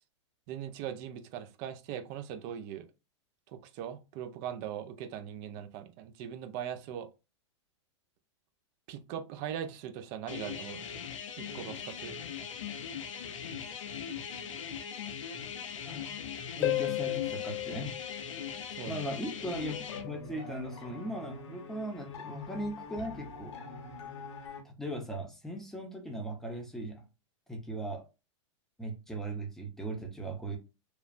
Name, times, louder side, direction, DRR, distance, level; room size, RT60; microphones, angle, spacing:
voice 1, 0.5-2.9 3.5-7.1 8.9-10.9 11.4-12.1 18.7-19.1, right 9 dB, 40° right, 0.5 m, -40 dB
sound 1, 10.3-20.1, left 7 dB, 90° left, 0.6 m, -40 dB
Harp, 16.6-19.1 22.6-22.7, left 15 dB, 40° left, 0.4 m, -34 dB
voice 2, 16.6-17.9 18.9-23.5 24.6-27.0 27.5-28.0 28.8-30.6, right 1 dB, ahead, 0.7 m, -38 dB
sound 2, 19.5-24.6, left 3 dB, 70° left, 0.9 m, -44 dB
3.0 x 2.2 x 2.5 m
hypercardioid pair, 130°, 16 cm